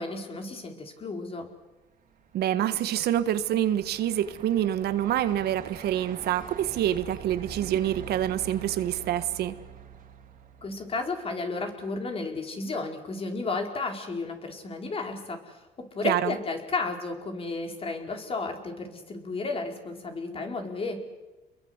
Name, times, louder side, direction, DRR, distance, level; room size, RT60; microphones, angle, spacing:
voice 1, 0.0-1.5 10.6-21.0, left 3 dB, 35° left, 4 dB, 4.7 m, -33 dB
Truck, 1.8-11.2, right 8 dB, 55° right, 3.8 m, -45 dB
voice 2, 2.3-9.5 16.0-16.3, right 11 dB, 70° right, 11 dB, 1.5 m, -26 dB
29.0 x 22.0 x 8.1 m, 1.1 s
cardioid pair, 110°, 17 cm